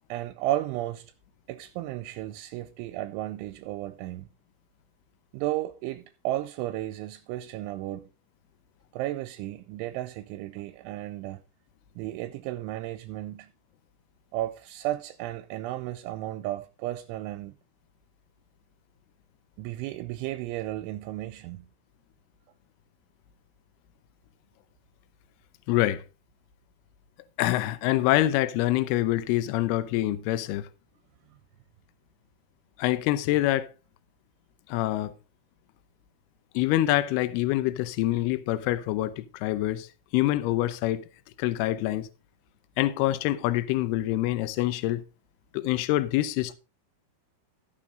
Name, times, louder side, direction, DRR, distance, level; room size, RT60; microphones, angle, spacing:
voice 1, 0.1-1.1 1.5-4.3 5.3-8.1 8.9-11.4 12.0-13.5 14.3-17.5 19.6-21.7, right 15 dB, 85° right, 3.0 m, -33 dB
voice 2, 25.7-26.0 27.4-30.7 32.8-33.7 34.7-35.1 36.5-41.1 41.4-42.1 42.8-45.0 45.5-46.5, left 15 dB, 90° left, 2.3 m, -26 dB
13.5 x 7.5 x 3.8 m
omnidirectional pair, 5.7 m